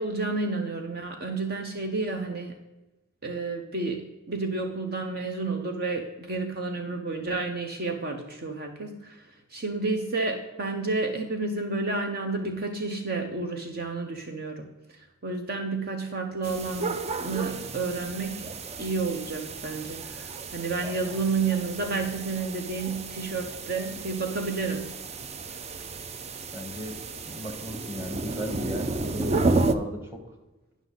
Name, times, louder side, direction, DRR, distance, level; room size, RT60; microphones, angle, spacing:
voice 1, 0.0-2.5 3.2-9.2 9.5-14.7 15.2-17.0 17.2-18.5 18.8-24.9, right 3 dB, 45° right, 4 dB, 0.8 m, -30 dB
sound 1, 16.4-29.7, right 3 dB, 30° right, 0.4 m, -32 dB
voice 2, 26.5-27.0 27.2-30.2, equal, 10° right, 2 dB, 1.4 m, -36 dB
10.5 x 6.0 x 4.0 m, 1.1 s
head